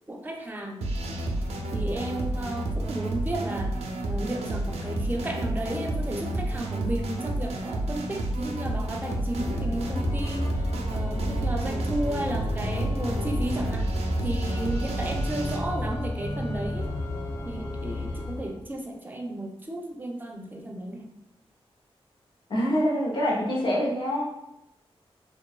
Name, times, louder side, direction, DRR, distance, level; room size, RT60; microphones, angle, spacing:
voice 1, 0.1-0.9 1.7-3.7 4.0-13.9 14.2-16.9 17.4-21.1, right 1 dB, 20° right, 2 dB, 0.4 m, -33 dB
sound 1, 0.8-15.6, right 1 dB, 85° right, 0.4 m, -30 dB
Organ, 9.3-18.6, left 1 dB, 25° left, 1.1 m, -32 dB
voice 2, 22.5-24.2, equal, 50° left, -4 dB, 0.7 m, -25 dB
2.6 x 2.2 x 2.3 m, 0.86 s
cardioid pair, 70°, 10 cm